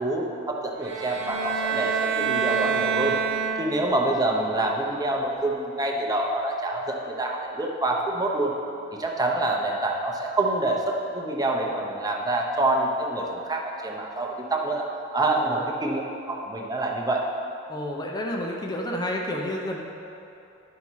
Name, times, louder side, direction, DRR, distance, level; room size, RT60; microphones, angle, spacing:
voice 1, 0.0-3.2 3.6-8.5 9.0-14.9 15.1-16.0 16.3-17.2, right 2 dB, 20° right, 0 dB, 0.8 m, -26 dB
sound 1, 0.8-4.0, right 6 dB, 60° right, 0.8 m, -27 dB
voice 2, 17.7-19.8, left 1 dB, 20° left, 0 dB, 0.6 m, -30 dB
11.0 x 5.5 x 4.6 m, 2.8 s
head